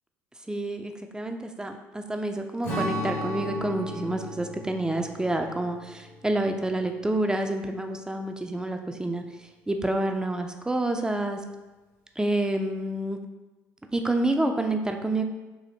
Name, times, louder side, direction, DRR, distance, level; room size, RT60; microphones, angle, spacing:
voice 1, 0.5-11.4 12.2-13.2 13.9-15.2, right 1 dB, 10° right, 5 dB, 0.4 m, -28 dB
Strum, 2.6-7.3, equal, 90° left, 1.1 m, -35 dB
4.2 x 2.7 x 2.7 m, 1.1 s
hypercardioid pair, 60°, 8 cm